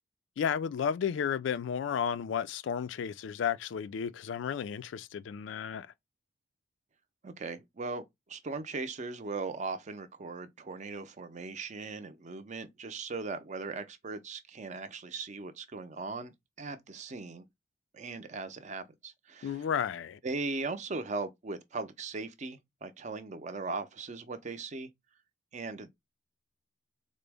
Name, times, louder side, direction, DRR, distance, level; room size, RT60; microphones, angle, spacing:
voice 1, 0.4-5.9 19.4-20.2, left 7 dB, 75° left, 0.3 m, -33 dB
voice 2, 7.2-17.5 17.9-19.6 20.2-24.9 25.5-25.9, right 3 dB, 40° right, 0.5 m, -39 dB
3.8 x 2.0 x 3.3 m
head